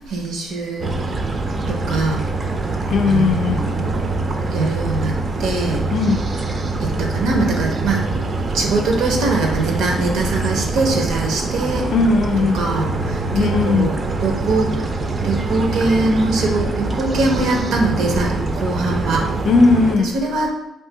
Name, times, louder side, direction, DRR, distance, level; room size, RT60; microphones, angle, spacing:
voice 1, 0.1-0.9 1.7-2.2 3.1-4.2 4.5-5.1 5.4-5.8 6.8-8.2 8.5-11.9 12.5-14.0 14.2-14.7 15.2-19.3 20.0-20.5, right 3 dB, 80° right, 2 dB, 0.6 m, -22 dB
sound 1, 0.8-19.9, right 2 dB, 40° right, 0.4 m, -24 dB
voice 2, 2.9-3.6 5.9-6.2 11.9-12.7 13.3-14.0 19.4-20.2, left 4 dB, 65° left, 6 dB, 0.3 m, -17 dB
2.7 x 2.4 x 3.7 m, 0.87 s
cardioid pair, 90°, 0 cm